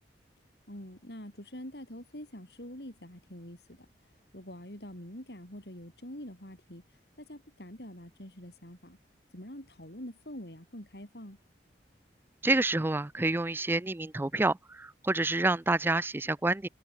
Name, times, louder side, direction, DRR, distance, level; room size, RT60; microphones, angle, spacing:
voice 1, 0.7-3.9 4.3-6.8 7.2-9.0 9.3-11.4, equal, 65° left, 7.6 m, -45 dB
voice 2, 12.4-16.7, right 2 dB, 10° right, 0.4 m, -28 dB
head